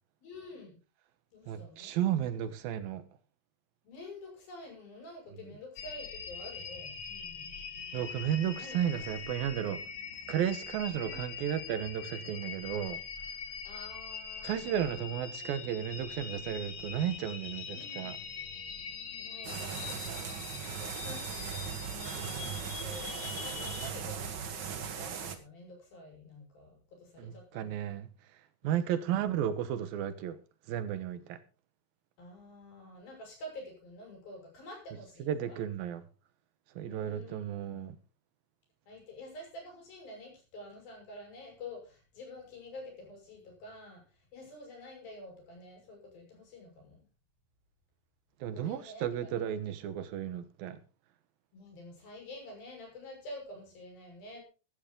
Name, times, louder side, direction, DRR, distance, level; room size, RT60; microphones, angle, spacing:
voice 1, 0.2-0.8 1.3-1.9 3.8-7.6 8.6-9.1 11.0-11.3 13.6-15.5 17.7-18.1 19.2-27.8 28.6-29.0 32.2-35.6 36.8-37.8 38.9-47.1 48.5-49.5 51.5-54.4, left 1 dB, 90° left, 7.7 m, -49 dB
voice 2, 1.5-3.0 7.9-9.8 10.3-13.0 14.4-18.2 27.2-28.1 28.6-30.4 30.7-31.4 35.2-36.0 36.8-38.0 48.4-50.8, right 10 dB, 90° right, 3.0 m, -33 dB
sound 1, 5.8-23.9, left 6 dB, 55° left, 2.8 m, -43 dB
sound 2, 19.4-25.3, right 7 dB, 55° right, 1.2 m, -38 dB
15.0 x 12.5 x 3.8 m
omnidirectional pair, 4.1 m